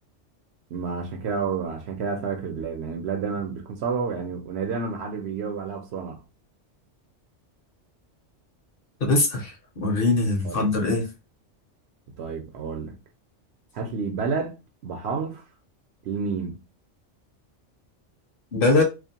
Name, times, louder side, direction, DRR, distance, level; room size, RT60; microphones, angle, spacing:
voice 1, 0.7-6.2 10.4-10.8 12.2-13.0 13.7-15.4 16.0-16.6, right 5 dB, 65° right, 0.8 m, -30 dB
voice 2, 9.0-11.1 18.5-18.8, left 2 dB, 55° left, 0.8 m, -22 dB
2.4 x 2.1 x 2.7 m
omnidirectional pair, 1.2 m